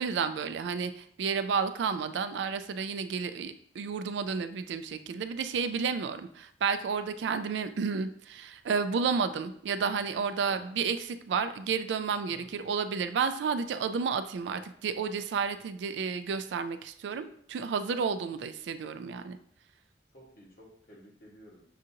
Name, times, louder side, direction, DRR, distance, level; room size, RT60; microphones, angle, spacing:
voice 1, 0.0-19.4, right 5 dB, 80° right, 10 dB, 0.3 m, -31 dB
voice 2, 12.3-12.8 20.1-21.6, equal, 50° left, -3 dB, 1.3 m, -53 dB
6.4 x 2.5 x 2.8 m, 0.64 s
head